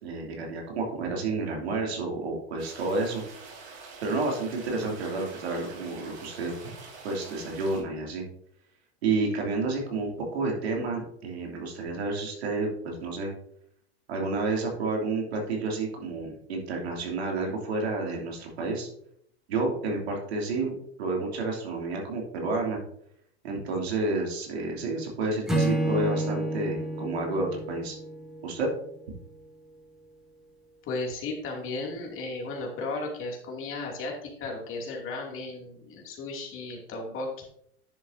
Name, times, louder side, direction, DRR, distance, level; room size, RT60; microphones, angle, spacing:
voice 1, 0.0-3.2 4.0-6.5 7.0-8.3 9.0-13.3 14.1-18.9 19.5-20.7 21.0-22.8 23.4-28.0 28.4-28.7, right 3 dB, 80° right, 0 dB, 2.8 m, -30 dB
sound 1, 2.6-7.8, right 4 dB, 60° right, 3.5 m, -46 dB
Acoustic guitar / Strum, 25.5-28.8, right 1 dB, ahead, 2.6 m, -29 dB
voice 2, 30.8-37.4, left 3 dB, 40° left, 0 dB, 2.7 m, -35 dB
10.5 x 7.0 x 2.7 m, 0.71 s
hypercardioid pair, 100°, 32 cm